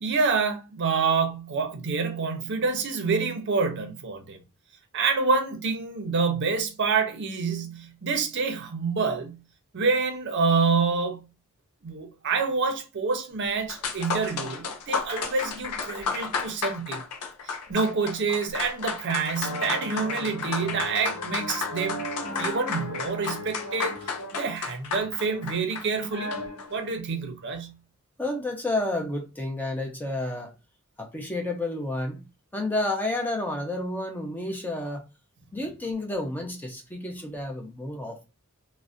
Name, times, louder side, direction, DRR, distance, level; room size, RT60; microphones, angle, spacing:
voice 1, 0.0-4.4 4.9-9.4 9.7-11.3 11.8-17.0 17.4-26.3 26.7-27.7, right 4 dB, 55° right, 0.5 m, -27 dB
sound 1, 13.4-13.5 13.7-26.7, left 5 dB, 90° left, 0.5 m, -33 dB
sound 2, 19.4-24.6 25.0-25.6 26.1-26.9, left 1 dB, 65° left, 0.8 m, -37 dB
voice 2, 28.2-30.5 31.0-32.2 32.5-35.0 35.5-38.2, left 2 dB, 10° left, 0.4 m, -30 dB
2.5 x 2.0 x 2.4 m
head